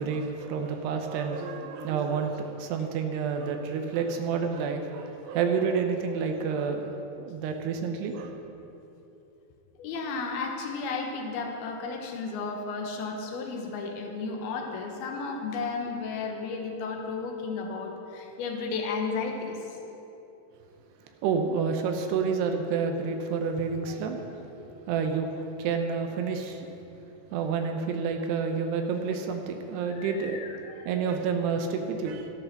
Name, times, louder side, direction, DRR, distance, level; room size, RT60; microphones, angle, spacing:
voice 1, 0.0-8.5 21.2-24.2 24.9-26.7 27.3-30.4 30.9-32.3, right 5 dB, 80° right, 4 dB, 2.9 m, -29 dB
voice 2, 9.8-19.8 24.2-24.3 24.6-24.7 29.8-30.9, left 4 dB, 75° left, 2 dB, 3.0 m, -34 dB
13.5 x 10.5 x 5.8 m, 3.0 s
omnidirectional pair, 4.8 m